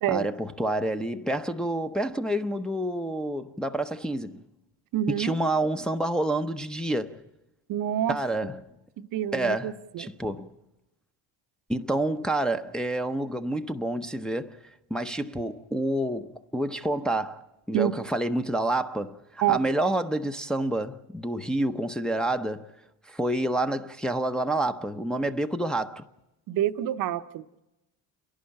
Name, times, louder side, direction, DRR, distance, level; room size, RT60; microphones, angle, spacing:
voice 1, 0.1-4.4 5.1-7.2 8.1-8.7 9.3-10.5 11.7-14.6 14.9-22.7 23.1-26.0, right 1 dB, ahead, 0.7 m, -28 dB
voice 2, 4.9-5.3 7.7-8.2 9.0-10.1 17.7-17.9 19.4-19.6 26.5-27.6, right 12 dB, 50° right, 0.8 m, -27 dB
29.5 x 11.5 x 8.6 m
supercardioid pair, 80°, 42 cm